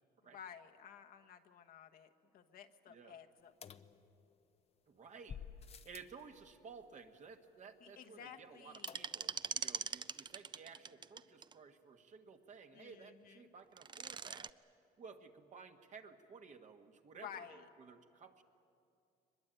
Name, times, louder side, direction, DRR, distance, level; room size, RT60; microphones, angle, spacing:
voice 1, 0.3-3.8 7.8-9.1 12.7-13.4 17.2-17.6, left 8 dB, 60° left, 5 dB, 1.3 m, -54 dB
voice 2, 2.9-3.2 4.9-14.5 15.0-18.4, right 5 dB, 45° right, 5 dB, 1.7 m, -56 dB
sound 1, 3.6-4.6 5.3-6.2 8.9-9.5 9.8-9.9 10.1-10.2, left 7 dB, 35° left, 0.8 m, -52 dB
sound 2, 8.7-11.5 13.6-14.5, right 6 dB, 25° right, 0.5 m, -42 dB
23.0 x 21.5 x 9.2 m, 2.5 s
cardioid pair, 110°, 17 cm